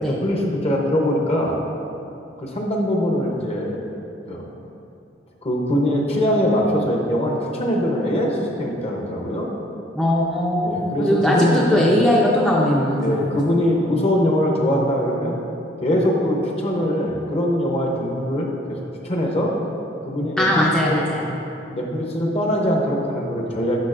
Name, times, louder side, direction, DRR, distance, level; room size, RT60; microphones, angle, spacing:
voice 1, 0.0-1.6 2.4-3.8 4.3-4.5 5.4-9.5 10.6-11.9 13.0-15.4 15.8-18.8 19.0-19.5 20.1-21.0 21.7-23.8, equal, 35° left, -1 dB, 0.8 m, -22 dB
voice 2, 10.0-13.3 20.4-21.2, equal, 5° left, -5 dB, 0.5 m, -19 dB
10.5 x 5.1 x 2.5 m, 2.8 s
head